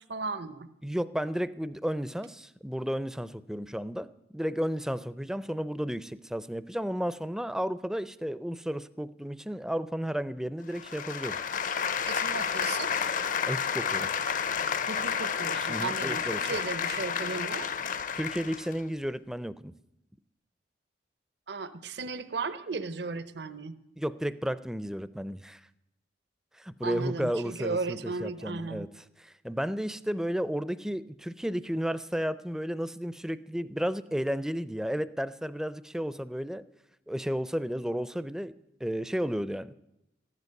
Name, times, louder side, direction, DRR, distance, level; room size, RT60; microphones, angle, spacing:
voice 1, 0.0-0.7 12.1-12.9 14.9-17.7 21.5-23.7 26.8-28.9, right 4 dB, 70° right, 12 dB, 0.8 m, -35 dB
voice 2, 0.8-4.1 4.3-11.4 13.5-14.1 15.7-16.6 18.1-19.7 24.0-25.6 26.6-28.9 29.2-36.6 37.1-38.5 38.8-39.7, equal, 5° right, 15 dB, 0.4 m, -33 dB
sound 1, 10.7-18.8, left 7 dB, 50° left, 0.6 m, -31 dB
14.5 x 11.0 x 6.5 m, 0.88 s
head